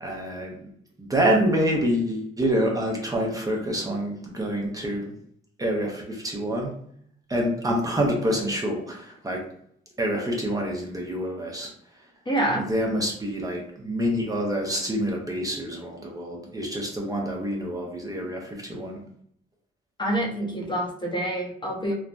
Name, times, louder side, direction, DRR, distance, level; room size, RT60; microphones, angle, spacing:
voice 1, 0.0-0.6 1.0-5.1 5.6-6.7 7.3-9.4 10.0-11.7 12.7-19.0, equal, 20° right, -1 dB, 0.7 m, -27 dB
voice 2, 12.3-12.7 20.0-21.9, right 1 dB, 25° left, -2 dB, 0.8 m, -27 dB
3.2 x 2.1 x 2.5 m, 0.65 s
cardioid pair, 90°, 20 cm